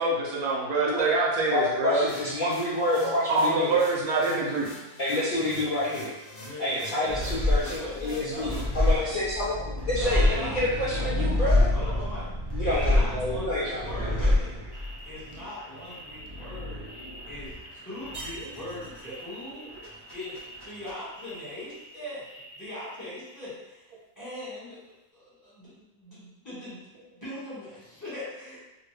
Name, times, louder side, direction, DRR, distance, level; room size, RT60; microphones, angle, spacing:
voice 1, 0.0-2.0 3.3-4.7 19.1-19.2, right 3 dB, 75° right, -4 dB, 1.1 m, -25 dB
voice 2, 1.5-3.8 5.0-6.1 6.6-11.7 12.5-14.3, left 1 dB, 80° left, -9 dB, 0.4 m, -28 dB
sound 1, 2.1-8.9, left 1 dB, 60° left, 0.9 m, -45 dB
voice 3, 6.4-9.2 10.0-10.6 10.9-11.3 11.7-12.3 12.6-14.6 15.0-16.9 17.3-19.7 20.1-20.3 20.6-22.3 22.5-28.6, left 1 dB, 10° left, -11 dB, 1.4 m, -40 dB
sound 2, 7.1-22.0 22.2-23.0, left 1 dB, 35° right, 0.4 m, -28 dB
2.7 x 2.6 x 3.3 m, 1.0 s
omnidirectional pair, 1.6 m